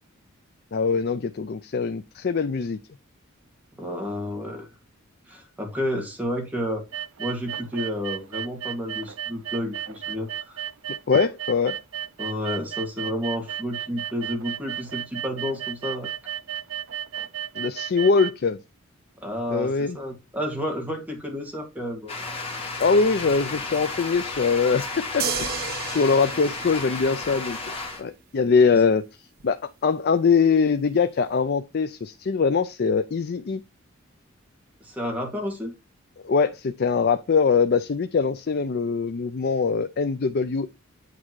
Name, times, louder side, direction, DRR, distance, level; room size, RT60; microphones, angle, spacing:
voice 1, 0.7-2.8 11.1-11.8 17.6-18.6 19.5-20.0 22.8-25.6 25.9-27.7 28.0-29.0 29.4-33.6 36.2-40.7, left 5 dB, 50° left, 0.4 m, -22 dB
voice 2, 3.8-4.7 5.3-6.9 7.2-10.6 12.2-16.1 19.2-22.1 34.8-35.7, equal, 10° right, 2.1 m, -31 dB
sound 1, 6.9-18.3, right 9 dB, 70° right, 0.5 m, -34 dB
sound 2, 22.1-28.0, left 3 dB, 30° left, 2.2 m, -33 dB
sound 3, 25.2-27.7 29.4-29.5, right 7 dB, 45° right, 1.0 m, -33 dB
8.6 x 3.6 x 4.7 m
head